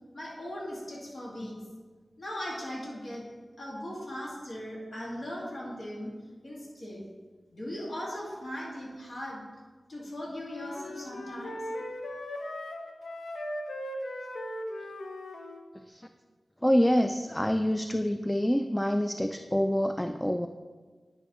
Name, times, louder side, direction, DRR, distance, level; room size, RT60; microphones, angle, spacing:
voice 1, 0.1-1.6 2.2-3.2 3.6-6.1 6.4-7.0 7.5-9.4 9.9-11.6, equal, 70° left, -4 dB, 1.8 m, -38 dB
sound 1, 10.4-15.6, left 1 dB, 90° left, 0.6 m, -38 dB
voice 2, 16.6-20.5, equal, 15° left, 7 dB, 0.3 m, -26 dB
10.0 x 5.4 x 3.0 m, 1.4 s
cardioid pair, 45°, 0 cm